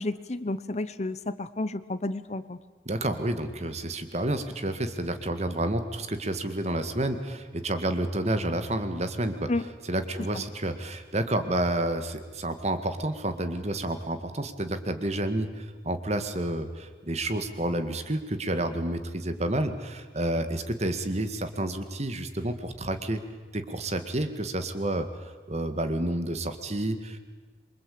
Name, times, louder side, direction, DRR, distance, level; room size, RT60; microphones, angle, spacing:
voice 1, 0.0-2.6 9.5-9.6, left 2 dB, 40° left, 14 dB, 0.9 m, -31 dB
voice 2, 2.9-9.5 9.8-23.2 23.5-25.1 25.5-27.2, right 1 dB, 40° right, 9 dB, 2.0 m, -30 dB
27.0 x 24.0 x 8.6 m, 1.4 s
head